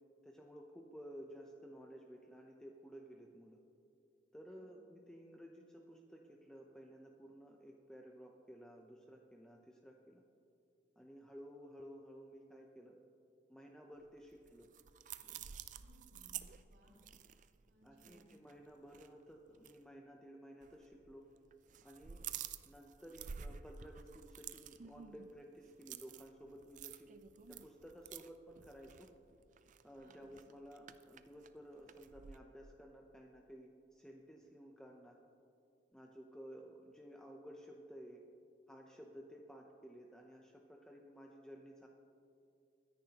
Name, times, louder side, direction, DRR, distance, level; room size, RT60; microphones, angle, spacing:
voice 1, 0.2-3.6 4.3-10.2 11.0-13.0 13.5-14.7 15.2-15.5 17.8-21.3 21.8-22.3 22.6-27.1 27.5-29.1 29.8-35.2 35.9-38.2 38.7-41.9, equal, 5° left, 0 dB, 0.6 m, -55 dB
voice 2, 4.4-4.8 15.7-16.4 16.6-17.0 17.7-18.2 30.0-30.3, right 1 dB, 85° right, -10 dB, 3.3 m, -67 dB
sound 1, 14.1-18.6 18.9-19.1 19.5-19.7 20.6-21.2 21.5-32.4, right 8 dB, 45° right, 0.4 m, -51 dB
22.0 x 10.5 x 2.9 m, 2.6 s
head